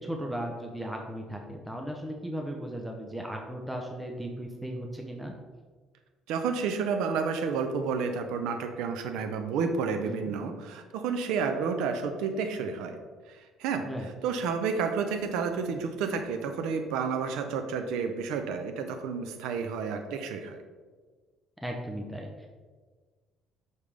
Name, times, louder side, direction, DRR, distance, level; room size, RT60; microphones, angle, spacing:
voice 1, 0.0-5.3 10.0-10.3 13.8-14.1 21.6-22.5, equal, 5° right, 1 dB, 0.6 m, -36 dB
voice 2, 6.3-13.0 13.3-20.6, right 5 dB, 90° right, 6 dB, 0.6 m, -30 dB
6.4 x 5.4 x 3.3 m, 1.4 s
cardioid pair, 130°, 0 cm